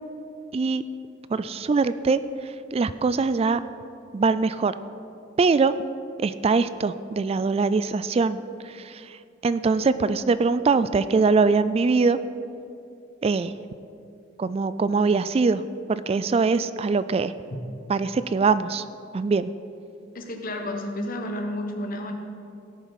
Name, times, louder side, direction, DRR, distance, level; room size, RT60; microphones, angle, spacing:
voice 1, 0.5-0.8 1.3-3.6 4.1-4.7 5.4-5.7 6.2-9.2 9.4-12.2 13.2-13.5 14.4-15.6 15.9-17.3 17.9-18.8 19.1-19.5, right 4 dB, 30° right, 14 dB, 0.3 m, -22 dB
voice 2, 20.1-22.1, left 1 dB, 50° left, 3 dB, 1.3 m, -31 dB
17.0 x 7.0 x 5.8 m, 2.5 s
head